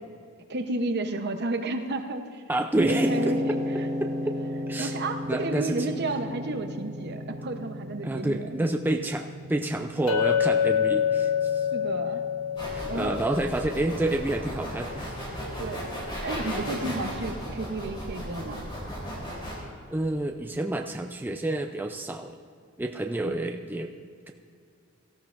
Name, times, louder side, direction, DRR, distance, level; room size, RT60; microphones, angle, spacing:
voice 1, 0.5-2.4 2.8-3.9 4.8-8.6 11.7-12.2 12.8-13.2 15.6-18.7 23.3-23.5, right 2 dB, 50° right, 6 dB, 0.8 m, -32 dB
voice 2, 2.5-3.4 4.0-4.1 4.7-5.0 5.3-5.8 8.0-11.6 12.7-15.1 19.9-22.4 22.8-23.9, right 1 dB, 10° right, 4 dB, 0.4 m, -29 dB
sound 1, 2.7-21.0, equal, 35° right, 1.4 m, -36 dB
Chink clink, 10.1-14.3, left 8 dB, 85° left, 0.9 m, -27 dB
sound 2, 12.6-19.6, equal, 25° left, 3.4 m, -35 dB
17.5 x 14.5 x 2.5 m, 2.3 s
head